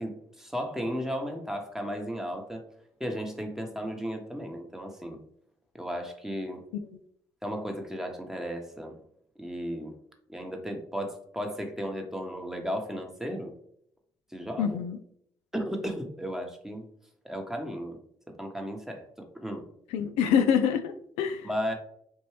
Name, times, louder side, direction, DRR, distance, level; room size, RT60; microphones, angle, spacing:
voice 1, 0.0-2.6 3.0-5.2 5.8-6.6 7.4-9.0 9.4-9.9 10.3-13.5 14.3-14.8 15.5-16.9 17.2-18.0 18.4-19.6 21.4-21.7, equal, 5° right, 3 dB, 1.0 m, -34 dB
voice 2, 14.6-15.0 19.9-21.5, left 7 dB, 80° left, 8 dB, 0.4 m, -26 dB
4.3 x 2.6 x 3.2 m, 0.69 s
hypercardioid pair, 50°, 11 cm